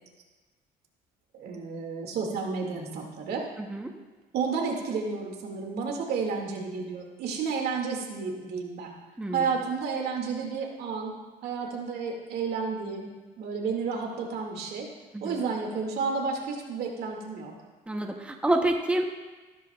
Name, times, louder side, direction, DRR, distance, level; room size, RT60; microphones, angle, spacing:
voice 1, 1.3-3.5 4.3-9.0 9.3-11.1 11.4-13.1 13.4-14.9 15.2-17.5, right 5 dB, 75° right, 1 dB, 2.2 m, -31 dB
voice 2, 3.6-3.9 9.2-9.5 15.1-15.4 17.9-19.1, right 1 dB, 5° right, 3 dB, 0.9 m, -28 dB
14.5 x 13.0 x 2.4 m, 1.3 s
cardioid pair, 110°, 17 cm